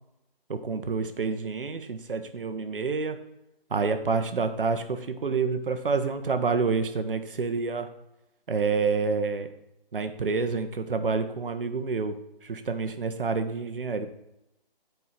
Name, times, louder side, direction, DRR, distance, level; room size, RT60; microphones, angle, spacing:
voice 1, 0.5-3.2 3.7-7.9 8.5-9.5 9.9-14.1, right 4 dB, 65° right, 8 dB, 0.9 m, -28 dB
9.1 x 4.6 x 4.1 m, 0.87 s
figure-of-eight pair, 165°, 29 cm